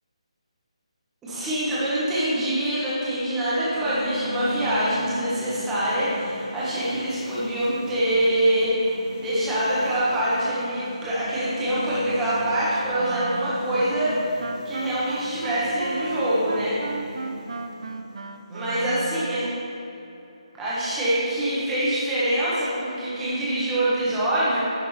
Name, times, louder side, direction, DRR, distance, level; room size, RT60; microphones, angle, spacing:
voice 1, 1.2-14.3 14.6-16.8 18.5-19.5 20.6-24.6, right 1 dB, 5° right, -10 dB, 1.6 m, -25 dB
sound 1, 3.5-19.5, left 2 dB, 20° left, 0.8 m, -40 dB
Wind instrument woodwind instrument, 13.0-19.6, right 3 dB, 65° right, 0.5 m, -34 dB
10.5 x 6.5 x 3.4 m, 2.9 s
hypercardioid pair, 175°, 3 cm